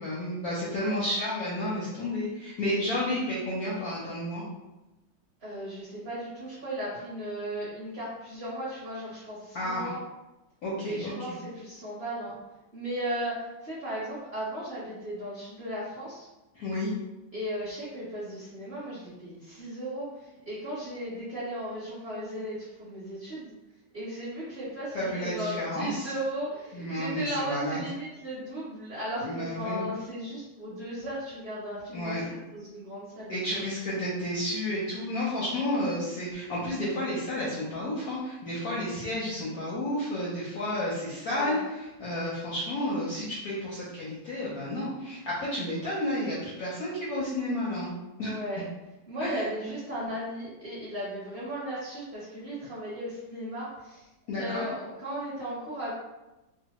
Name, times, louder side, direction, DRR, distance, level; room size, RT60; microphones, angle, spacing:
voice 1, 0.0-4.4 9.5-9.9 10.6-11.4 16.6-16.9 24.9-26.1 26.7-27.8 29.2-29.8 31.9-32.2 33.3-47.9 48.2-48.4 49.2-49.4 54.3-54.6, left 1 dB, 70° left, -7 dB, 0.9 m, -31 dB
voice 2, 0.7-1.1 5.4-10.0 10.7-12.4 12.7-16.3 17.3-23.5 23.9-33.8 41.3-41.6 48.2-48.6 49.1-54.0 54.3-55.9, equal, 40° right, -10 dB, 1.0 m, -36 dB
3.2 x 2.1 x 2.9 m, 1.0 s
omnidirectional pair, 2.2 m